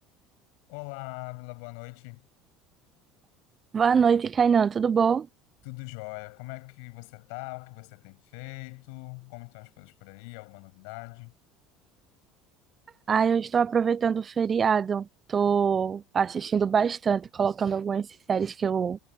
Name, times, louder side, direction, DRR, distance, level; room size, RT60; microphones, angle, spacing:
voice 1, 0.7-2.3 5.6-11.3, left 37 dB, 75° left, 6.9 m, -41 dB
voice 2, 3.7-5.3 13.1-19.0, right 6 dB, 35° right, 0.4 m, -24 dB
hypercardioid pair, 80°, 0 cm